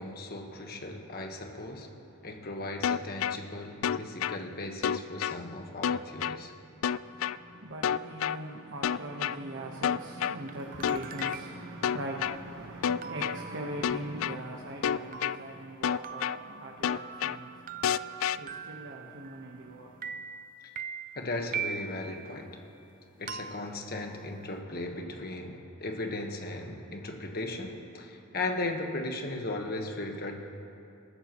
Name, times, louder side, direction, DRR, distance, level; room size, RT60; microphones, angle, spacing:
voice 1, 0.0-2.0 2.2-6.5 21.1-22.6 23.2-30.4, left 2 dB, 45° left, 1.4 m, -37 dB
sound 1, 2.8-3.4 3.8-4.4 4.8-5.4 5.8-6.4 6.8-7.4 7.8-8.4 8.8-9.4 9.8-10.4 10.8-11.4 11.8-12.4 12.8-13.4 13.8-14.4 14.8-15.4 15.8-16.4 16.8-17.4 17.8-18.4, left 8 dB, 65° left, 0.3 m, -28 dB
voice 2, 6.9-20.2, right 1 dB, 60° right, 1.2 m, -41 dB
sound 2, 10.5-11.8 13.0-19.7 20.0-22.2 23.3-24.6, right 7 dB, 40° right, 0.5 m, -42 dB
27.0 x 14.0 x 3.1 m
head